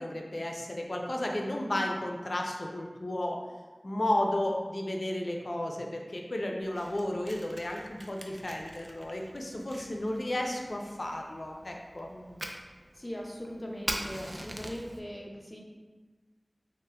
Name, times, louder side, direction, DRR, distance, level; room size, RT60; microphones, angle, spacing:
voice 1, 0.0-3.4 3.8-12.1, left 1 dB, 75° left, 1 dB, 0.4 m, -33 dB
Fire, 6.6-15.0, equal, 25° right, 0.4 m, -43 dB
voice 2, 12.9-15.6, equal, 30° left, -1 dB, 0.6 m, -40 dB
6.4 x 2.1 x 2.2 m, 1.3 s
wide cardioid pair, 40°, 0 cm